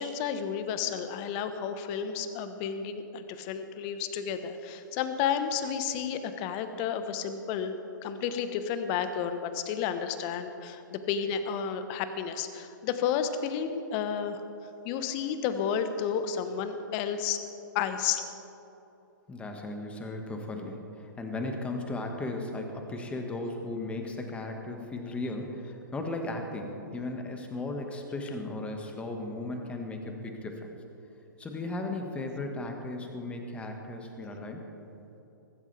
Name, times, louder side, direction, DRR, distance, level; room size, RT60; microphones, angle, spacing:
voice 1, 0.0-14.4 14.8-17.4 17.7-18.3, left 7 dB, 35° left, 9 dB, 1.2 m, -31 dB
voice 2, 19.3-30.7 31.4-34.6, left 2 dB, 10° left, 3 dB, 1.8 m, -36 dB
23.5 x 13.0 x 3.5 m, 2.9 s
figure-of-eight pair, 120°, 11 cm